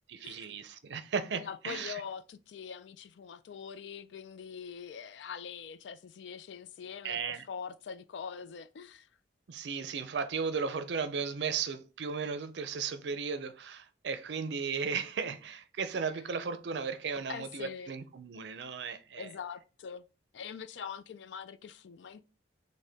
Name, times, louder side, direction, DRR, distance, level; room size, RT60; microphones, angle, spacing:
voice 1, 0.1-2.0 7.0-7.5 9.5-19.3, right 5 dB, 70° right, 0.5 m, -35 dB
voice 2, 1.4-9.1 17.3-17.9 19.2-20.0 20.3-22.2, left 7 dB, 75° left, 0.4 m, -43 dB
6.4 x 2.1 x 3.4 m
head